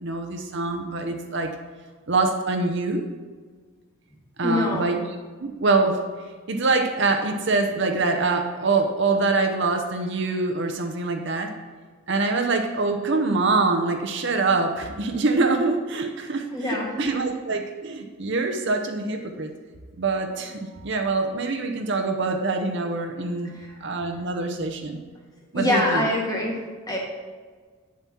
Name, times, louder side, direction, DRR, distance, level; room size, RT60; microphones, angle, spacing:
voice 1, 0.0-1.5 2.1-3.1 4.4-5.0 5.4-6.0 6.5-11.5 12.1-19.5 20.0-23.5 23.8-25.0 25.5-26.1, right 3 dB, 55° right, 4 dB, 0.8 m, -24 dB
voice 2, 4.4-5.0 16.5-17.1 23.6-23.7 25.5-26.6 26.9-27.0, left 1 dB, 15° left, -2 dB, 1.7 m, -24 dB
8.8 x 7.2 x 4.4 m, 1.5 s
head